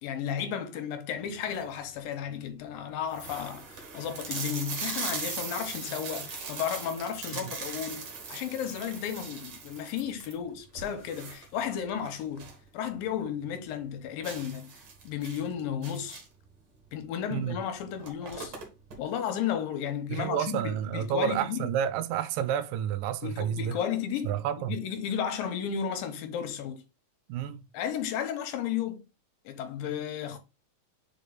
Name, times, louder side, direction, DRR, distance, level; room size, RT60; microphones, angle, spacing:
voice 1, 0.0-14.7 15.0-16.2 16.9-18.6 19.0-21.7 23.2-24.4 24.7-26.8 27.7-29.0 29.5-30.4, left 8 dB, 80° left, 2.7 m, -33 dB
sound 1, 1.3-1.8 2.4-2.5 2.7-2.8 3.1-12.7 13.0-13.1 13.5-13.6 14.2-16.5 17.4-17.5 17.8-19.0, right 4 dB, 50° right, 1.7 m, -39 dB
voice 2, 20.1-23.8 24.3-24.8 27.3-27.6, right 9 dB, 85° right, 2.2 m, -30 dB
5.3 x 4.7 x 4.0 m
omnidirectional pair, 4.1 m